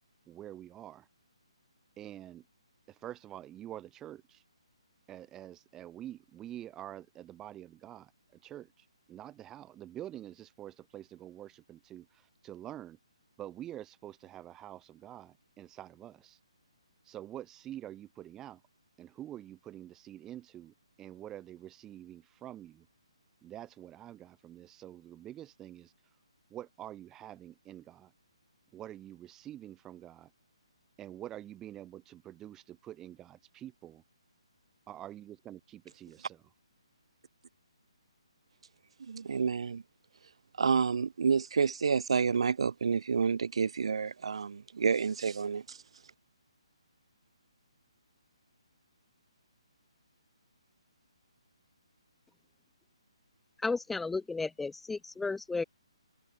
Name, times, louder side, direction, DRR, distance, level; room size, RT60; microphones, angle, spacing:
voice 1, 0.3-1.1 2.0-2.4 2.9-4.4 5.1-8.1 8.4-13.0 13.4-16.4 17.0-18.6 19.0-22.9 23.4-25.9 26.5-28.1 28.7-30.3 31.0-34.0 34.9-36.4, right 12 dB, 15° right, 2.5 m, -47 dB
voice 2, 39.0-39.8 40.6-45.8, right 6 dB, 65° right, 1.6 m, -29 dB
voice 3, 53.6-55.6, left 3 dB, 5° left, 0.3 m, -33 dB
figure-of-eight pair, 150°, 3 cm